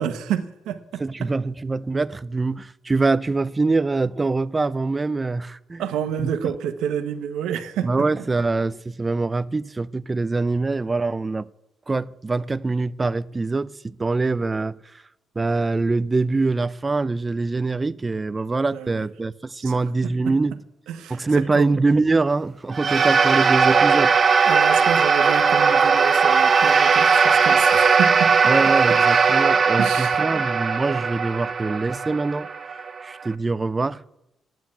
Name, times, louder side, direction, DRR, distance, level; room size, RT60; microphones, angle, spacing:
voice 1, 0.0-1.3 5.8-8.0 18.7-19.1 19.6-19.7 20.0-20.3 20.9-21.2 21.5-21.8 24.5-28.3 29.8-30.2, right 9 dB, 90° right, 1.2 m, -29 dB
voice 2, 1.0-5.9 6.2-6.3 7.8-11.5 11.9-15.0 15.4-20.6 21.1-24.1 28.5-32.5 33.0-34.0, right 3 dB, 25° right, 0.5 m, -24 dB
sound 1, 22.7-33.3, right 5 dB, 40° right, 1.0 m, -18 dB
10.5 x 9.2 x 9.0 m
cardioid pair, 90°, 0 cm